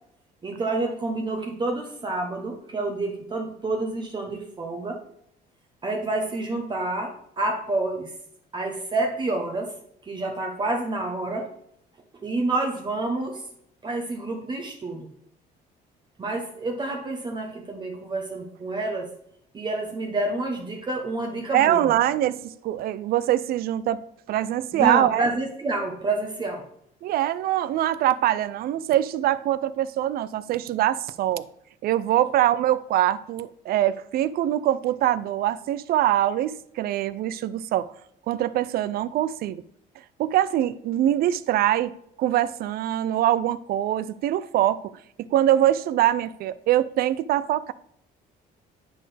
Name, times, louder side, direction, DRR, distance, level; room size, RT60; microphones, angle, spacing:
voice 1, 0.4-5.0 5.8-8.1 8.5-9.7 10.0-11.5 12.2-13.4 13.8-15.1 16.2-19.1 19.5-21.9 24.7-26.6, right 2 dB, 25° right, 2 dB, 1.0 m, -28 dB
voice 2, 21.5-24.0 24.3-25.3 27.0-31.4 31.8-37.9 38.3-39.6 40.2-41.9 42.2-44.8 45.3-47.7, right 12 dB, 65° right, 16 dB, 0.4 m, -23 dB
9.6 x 4.2 x 3.3 m, 0.72 s
cardioid pair, 110°, 17 cm